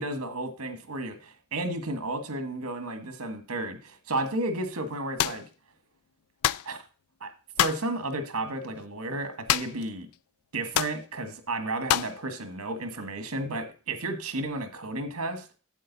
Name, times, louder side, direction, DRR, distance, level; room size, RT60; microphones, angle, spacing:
voice 1, 0.0-5.4 6.7-6.8 7.2-7.3 7.6-10.1 10.5-15.5, right 2 dB, 80° right, 9 dB, 1.6 m, -32 dB
sound 1, 5.2-5.4 6.4-6.7 7.6-7.9 9.5-9.9 10.1-10.2 10.7-11.0 11.9-12.2, left 12 dB, 85° left, 0.3 m, -26 dB
9.1 x 7.7 x 4.0 m, 0.35 s
head